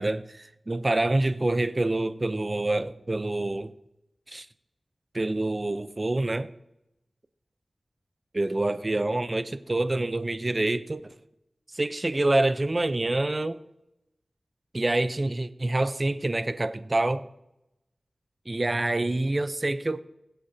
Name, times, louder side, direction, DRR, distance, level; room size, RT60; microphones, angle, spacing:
voice 1, 0.0-3.7 4.3-4.5 5.1-6.5 8.3-11.1 11.7-13.6 14.7-17.3 18.5-20.0, right 2 dB, 35° right, 0.7 m, -26 dB
21.5 x 8.4 x 2.8 m
wide cardioid pair, 55°, 0 cm